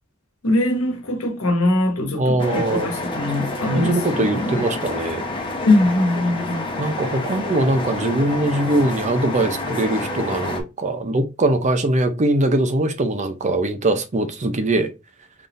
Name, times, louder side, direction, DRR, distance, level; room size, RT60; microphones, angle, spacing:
voice 1, 0.4-4.6 5.6-6.6, left 1 dB, 70° left, 1.3 m, -21 dB
voice 2, 2.1-2.9 3.4-5.2 6.8-14.9, right 2 dB, 35° right, 0.6 m, -21 dB
sound 1, 2.4-10.6, left 2 dB, 25° left, 0.9 m, -28 dB
3.9 x 3.5 x 2.5 m
head